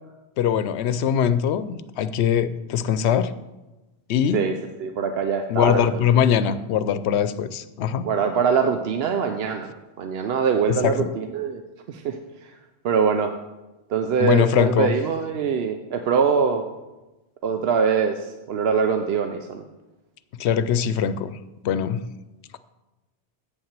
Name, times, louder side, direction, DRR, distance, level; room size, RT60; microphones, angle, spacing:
voice 1, 0.4-3.3 4.1-4.5 5.5-8.1 10.8-11.1 14.2-14.9 20.4-21.3 21.6-22.0, left 9 dB, 80° left, 13 dB, 0.8 m, -22 dB
voice 2, 4.8-6.1 8.0-11.6 11.9-12.5 12.8-13.3 13.9-16.6 17.4-19.6, right 6 dB, 70° right, 6 dB, 0.9 m, -23 dB
8.4 x 5.7 x 7.4 m, 1.1 s
omnidirectional pair, 1.1 m